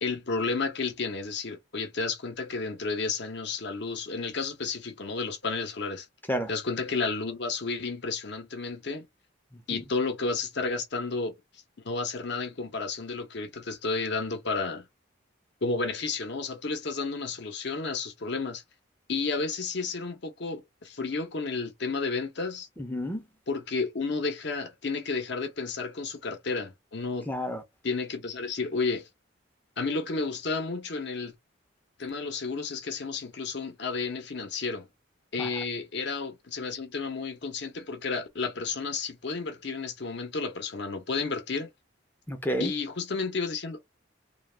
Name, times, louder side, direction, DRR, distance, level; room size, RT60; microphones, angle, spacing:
voice 1, 0.0-6.1 6.5-9.1 9.7-11.4 11.8-14.9 15.6-18.6 19.1-22.7 23.5-27.3 27.8-29.1 29.8-31.3 32.0-34.9 35.3-41.7 42.6-43.8, left 4 dB, 60° left, 0.7 m, -32 dB
voice 2, 22.8-23.3 27.3-27.6 35.4-35.5 42.3-42.7, equal, 10° left, 0.5 m, -31 dB
2.3 x 2.3 x 3.2 m
head